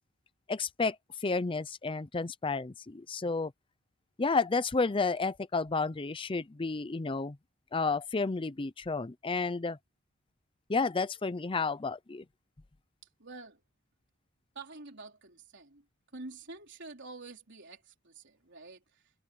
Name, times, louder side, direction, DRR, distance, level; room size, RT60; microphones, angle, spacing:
voice 1, 0.5-1.0 1.2-3.5 4.2-7.4 7.7-9.8 10.7-12.2, left 4 dB, 25° left, 0.5 m, -31 dB
voice 2, 13.2-13.6 14.5-15.9 16.1-19.1, right 3 dB, 55° right, 4.1 m, -48 dB
head